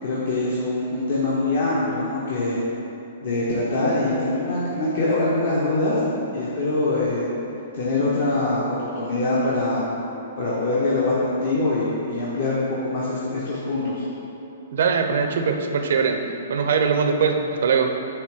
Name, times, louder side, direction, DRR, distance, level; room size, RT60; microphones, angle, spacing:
voice 1, 0.0-2.6 3.2-6.0 6.3-7.3 7.7-9.8 10.4-14.0, left 2 dB, 60° left, -7 dB, 1.2 m, -23 dB
voice 2, 14.7-16.2 16.5-17.9, right 5 dB, 60° right, 5 dB, 0.7 m, -21 dB
9.5 x 3.3 x 5.0 m, 2.8 s
figure-of-eight pair, 115°, 0 cm